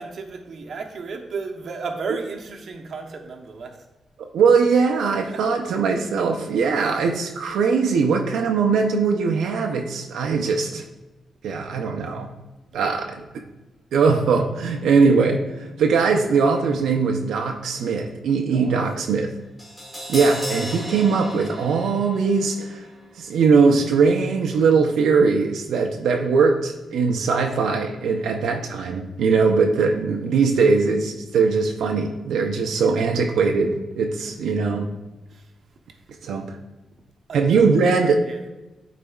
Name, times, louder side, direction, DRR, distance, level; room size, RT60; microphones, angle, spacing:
voice 1, 0.0-3.8 5.3-5.4 6.2-6.3 12.7-12.9 18.5-18.7 28.2-28.4 32.5-33.1 34.2-34.3 35.3-35.5 35.9-36.0 37.3-37.7 38.2-38.4, right 4 dB, 45° right, 2 dB, 0.8 m, -34 dB
voice 2, 4.3-10.8 11.4-12.3 12.7-13.4 13.9-19.3 20.1-22.9 23.1-34.9 36.2-36.6 37.3-38.5, right 5 dB, 85° right, 3 dB, 0.6 m, -20 dB
Crash cymbal, 19.6-25.7 26.0-26.1, equal, 5° left, 1.9 m, -37 dB
12.0 x 4.1 x 2.3 m, 1.1 s
wide cardioid pair, 175°, 0 cm